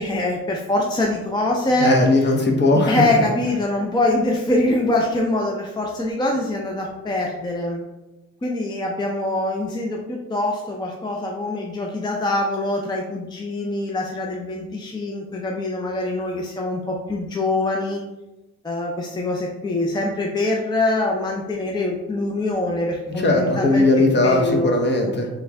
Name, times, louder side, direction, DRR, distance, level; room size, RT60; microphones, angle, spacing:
voice 1, 0.0-1.9 2.9-7.8 8.4-18.0 18.6-23.9 24.2-24.7, left 2 dB, 15° left, -1 dB, 0.5 m, -24 dB
voice 2, 1.8-3.0 23.2-25.3, left 2 dB, 35° left, 2 dB, 0.9 m, -18 dB
3.6 x 3.1 x 3.4 m, 1.0 s
cardioid pair, 90°, 30 cm